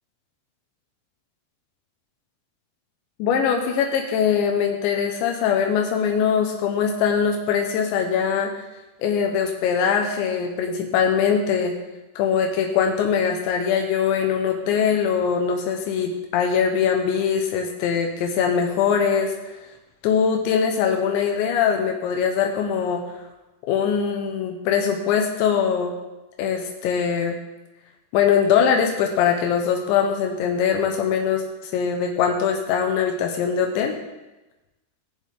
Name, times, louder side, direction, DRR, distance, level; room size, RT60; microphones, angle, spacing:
voice 1, 3.2-8.5 9.0-11.7 12.2-19.5 20.0-23.0 23.7-25.9 26.4-27.4 28.1-34.0, left 7 dB, 85° left, 3 dB, 3.3 m, -22 dB
19.0 x 7.4 x 3.7 m, 1.0 s
omnidirectional pair, 5.2 m